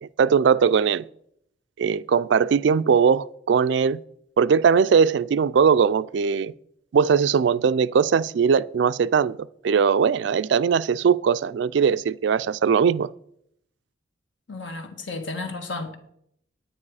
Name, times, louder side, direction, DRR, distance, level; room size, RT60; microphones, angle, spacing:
voice 1, 0.0-1.0 1.8-4.0 4.4-6.5 6.9-9.4 9.6-13.1, right 6 dB, 65° right, 0.3 m, -20 dB
voice 2, 14.5-16.0, left 3 dB, 75° left, 1.5 m, -33 dB
9.8 x 9.3 x 4.8 m
head